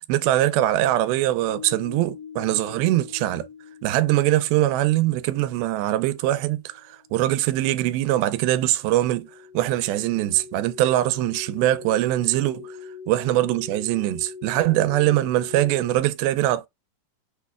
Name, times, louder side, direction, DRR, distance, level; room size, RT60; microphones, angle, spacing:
voice 1, 0.0-3.4 3.8-9.3 9.5-12.7 13.1-16.7, right 15 dB, 85° right, 2.4 m, -22 dB
sound 1, 1.5-5.7 8.7-16.0, left 6 dB, 75° left, 2.5 m, -42 dB
6.4 x 3.0 x 2.3 m
omnidirectional pair, 4.2 m